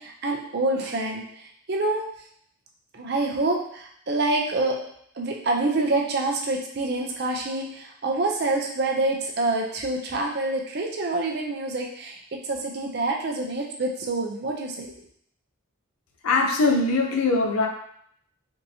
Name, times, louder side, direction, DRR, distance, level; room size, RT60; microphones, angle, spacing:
voice 1, 0.0-2.0 2.9-4.8 5.2-14.9, right 2 dB, 50° right, 1 dB, 0.5 m, -27 dB
voice 2, 16.2-17.7, left 3 dB, 85° left, 1 dB, 0.6 m, -21 dB
3.5 x 2.8 x 2.7 m, 0.67 s
head